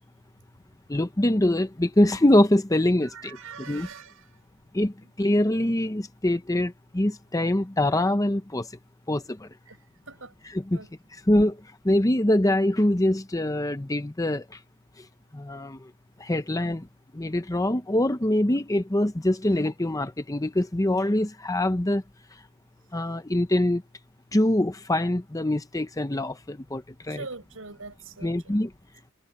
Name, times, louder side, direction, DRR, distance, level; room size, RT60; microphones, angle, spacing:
voice 1, 0.9-3.4 3.7-3.9 4.7-4.9 5.2-8.7 9.1-9.5 10.5-10.8 11.3-11.6 11.8-14.4 15.3-15.8 16.2-16.9 17.1-22.0 22.9-23.8 24.3-27.2 28.2-28.7, left 1 dB, 15° left, 0.8 m, -24 dB
voice 2, 3.0-4.4 9.7-9.8 10.1-10.3 10.7-10.9 27.1-28.6, right 4 dB, 65° right, 7.6 m, -42 dB
head